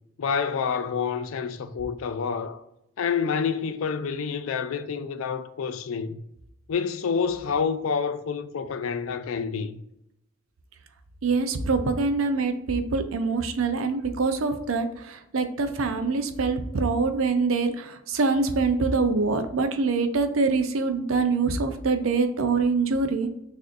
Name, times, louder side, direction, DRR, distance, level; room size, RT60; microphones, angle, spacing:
voice 1, 0.2-2.6 3.0-6.2 6.7-9.8, left 6 dB, 80° left, 0.4 m, -28 dB
voice 2, 11.2-23.3, right 4 dB, 85° right, 0.5 m, -24 dB
6.1 x 2.6 x 2.5 m
head